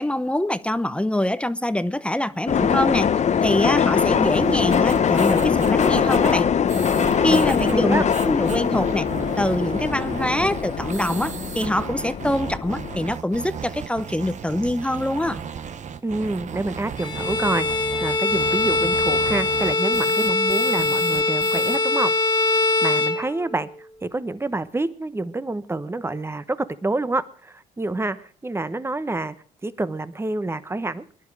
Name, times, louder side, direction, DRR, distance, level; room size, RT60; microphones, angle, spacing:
voice 1, 0.0-3.1 3.4-6.4 7.2-9.1 9.4-15.4, left 1 dB, 5° left, 0.8 m, -24 dB
sound 1, 2.5-13.1, left 7 dB, 45° left, 0.9 m, -22 dB
sound 2, 4.2-21.8, right 7 dB, 50° right, 1.1 m, -35 dB
voice 2, 7.2-8.0 16.0-22.1 22.8-23.7 24.0-29.3 29.6-31.0, right 2 dB, 15° right, 1.1 m, -27 dB
Bowed string instrument, 17.0-23.8, left 3 dB, 25° left, 1.9 m, -22 dB
20.5 x 11.0 x 4.8 m
supercardioid pair, 75°, 16 cm